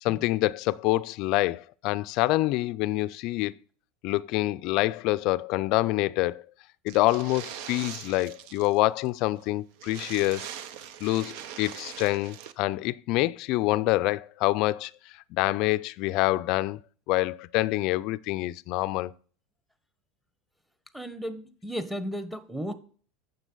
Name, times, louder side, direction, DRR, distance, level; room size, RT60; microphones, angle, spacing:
voice 1, 0.0-3.5 4.0-6.4 6.8-10.5 11.0-14.9 15.3-16.8 17.1-19.1, left 18 dB, 60° left, 0.4 m, -26 dB
sound 1, 6.9-8.8 9.0-9.1 9.4-9.5 9.8-12.5, right 9 dB, 65° right, 0.6 m, -42 dB
voice 2, 20.9-22.7, equal, 5° right, 1.2 m, -34 dB
9.2 x 7.0 x 3.9 m
hypercardioid pair, 95°, 0 cm